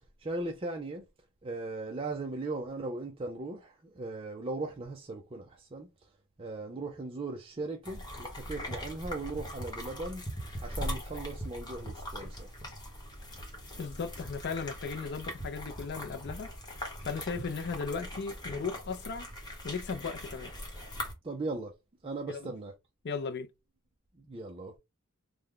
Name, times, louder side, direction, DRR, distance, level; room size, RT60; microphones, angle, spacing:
voice 1, 0.2-1.0 1.4-5.9 6.4-10.2 10.6-12.5 21.2-21.7 22.0-22.7 24.2-24.8, right 2 dB, 25° right, 0.5 m, -38 dB
sound 1, 7.8-21.1, equal, 20° left, 1.0 m, -41 dB
voice 2, 13.8-16.5 17.0-19.3 19.6-20.5 22.3-22.5 23.0-23.5, left 5 dB, 50° left, 0.4 m, -36 dB
3.3 x 2.1 x 3.7 m
head